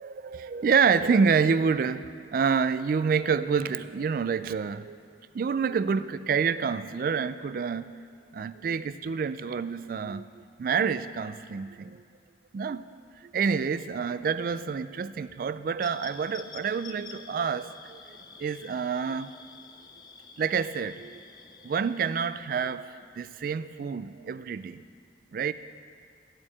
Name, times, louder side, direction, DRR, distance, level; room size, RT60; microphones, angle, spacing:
voice 1, 0.0-8.0 8.3-12.0 12.5-12.8 13.2-18.0 18.4-19.3 20.4-21.2 21.6-24.8 25.3-25.5, right 6 dB, 50° right, 0.3 m, -28 dB
sound 1, 15.8-22.6, left 5 dB, 25° left, 0.4 m, -49 dB
12.5 x 4.6 x 8.5 m
head